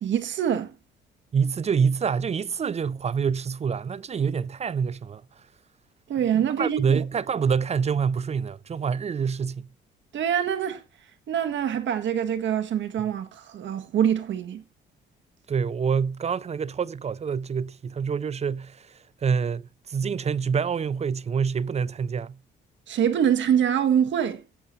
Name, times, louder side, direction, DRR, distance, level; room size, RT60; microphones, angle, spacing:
voice 1, 0.0-0.7 6.1-7.0 10.1-10.8 11.3-14.6 22.9-24.4, right 9 dB, 70° right, 1.8 m, -24 dB
voice 2, 1.3-5.2 6.6-9.7 15.5-22.4, right 6 dB, 35° right, 0.5 m, -26 dB
17.0 x 8.0 x 2.7 m
cardioid pair, 90°, 20 cm